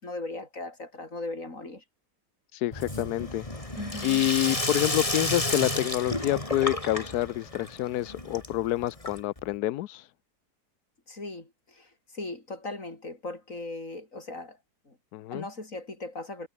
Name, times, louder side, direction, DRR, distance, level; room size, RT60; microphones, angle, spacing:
voice 1, 0.0-1.8 3.8-4.3 11.1-14.6 14.9-15.0 15.3-16.5, left 2 dB, 50° left, 6.3 m, -38 dB
voice 2, 2.5-3.4 4.0-10.1 15.1-15.5, left 15 dB, 75° left, 1.1 m, -27 dB
Sink (filling or washing), 2.7-9.5, left 1 dB, 20° left, 3.5 m, -32 dB
omnidirectional pair, 1.8 m